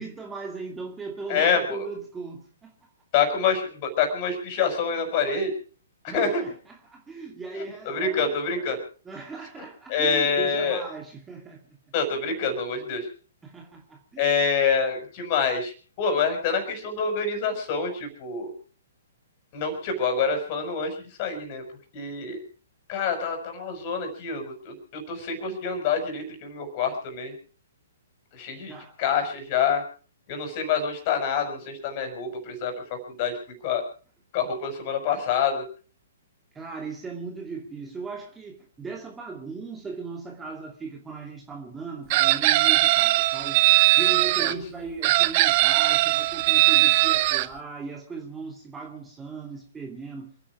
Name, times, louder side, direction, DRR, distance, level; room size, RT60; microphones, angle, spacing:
voice 1, 0.0-2.7 6.1-8.4 9.1-11.6 13.4-14.2 28.7-29.0 36.5-43.6 44.0-50.3, right 4 dB, 10° right, 1 dB, 2.4 m, -38 dB
voice 2, 1.3-1.9 3.1-5.5 6.0-6.4 7.5-8.8 9.6-10.8 11.9-13.1 14.2-18.5 19.5-21.6 21.9-22.4 22.9-27.3 28.3-29.8 30.3-33.8 34.3-35.6 44.4-44.6, left 5 dB, 35° left, 6 dB, 5.9 m, -27 dB
Chicken rooster, 42.1-44.5 45.0-47.5, right 18 dB, 40° right, 0.7 m, -20 dB
28.0 x 10.0 x 4.8 m, 0.42 s
figure-of-eight pair, 120°, 0 cm